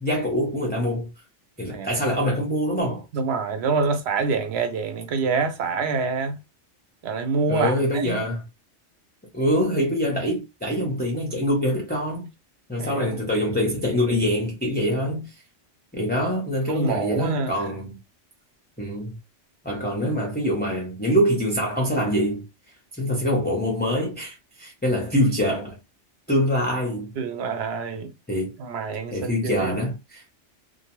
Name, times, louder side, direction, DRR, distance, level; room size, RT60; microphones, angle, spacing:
voice 1, 0.0-1.1 1.6-3.0 7.5-8.4 9.3-12.3 12.7-15.3 15.9-18.0 18.8-19.2 19.6-22.4 23.0-25.8 26.3-27.1 28.3-28.5 29.1-30.2, equal, 10° left, 0.5 m, -24 dB
voice 2, 3.1-6.4 7.0-8.2 12.8-13.2 16.7-17.5 27.2-28.1 28.6-29.8, right 4 dB, 65° right, 0.8 m, -26 dB
2.6 x 2.1 x 2.9 m
omnidirectional pair, 1.2 m